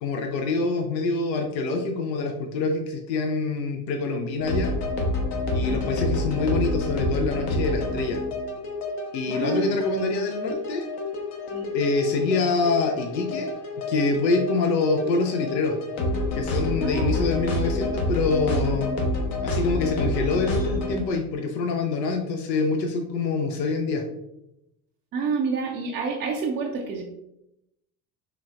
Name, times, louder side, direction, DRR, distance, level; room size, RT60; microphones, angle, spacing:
voice 1, 0.0-4.7 5.5-8.2 9.1-10.9 11.7-13.6 13.9-15.8 16.3-19.0 19.4-24.0, left 3 dB, 80° left, 4 dB, 0.6 m, -25 dB
sound 1, 4.4-21.0, left 2 dB, 50° left, 1.0 m, -28 dB
voice 2, 9.3-9.9 11.5-11.7 16.8-17.3 25.1-27.0, right 5 dB, 25° right, -1 dB, 0.3 m, -29 dB
3.6 x 3.3 x 2.4 m, 0.84 s
figure-of-eight pair, 75°, 50 cm